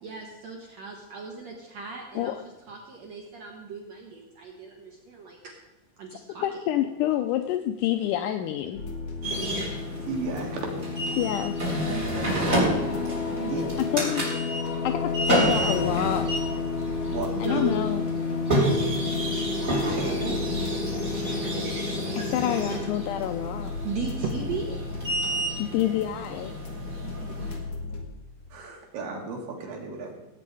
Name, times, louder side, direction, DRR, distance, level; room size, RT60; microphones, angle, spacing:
voice 1, 0.0-2.4 2.7-5.5 6.0-6.6 11.8-12.5 13.4-13.7 17.3-17.8 18.9-19.1 23.8-24.8 26.8-27.6, right 5 dB, 60° right, 1 dB, 2.2 m, -37 dB
voice 2, 6.4-8.8 11.2-11.6 13.9-14.2 14.8-16.3 17.4-18.0 22.2-23.7 25.6-26.5, left 12 dB, 80° left, 7 dB, 2.0 m, -27 dB
sound 1, 8.7-28.0, left 4 dB, 55° left, 2.4 m, -32 dB
sound 2, 9.2-27.6, right 1 dB, 25° right, 3.6 m, -30 dB
voice 3, 10.1-10.7 13.5-13.7 17.1-17.3 19.9-20.3 28.5-30.1, right 4 dB, 80° right, 0 dB, 3.7 m, -34 dB
16.5 x 8.8 x 4.8 m, 1.0 s
omnidirectional pair, 4.0 m